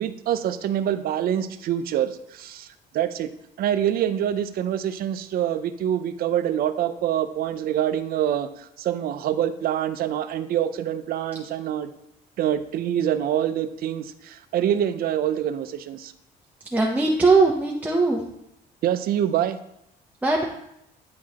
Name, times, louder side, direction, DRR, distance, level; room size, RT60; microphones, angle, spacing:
voice 1, 0.0-2.7 2.9-3.3 3.6-11.9 12.4-16.1 18.8-19.6, right 10 dB, 60° right, 12 dB, 0.5 m, -25 dB
voice 2, 16.7-18.2 20.2-20.4, right 3 dB, 10° right, -1 dB, 0.7 m, -20 dB
9.3 x 4.7 x 2.9 m, 0.79 s
cardioid pair, 110°, 17 cm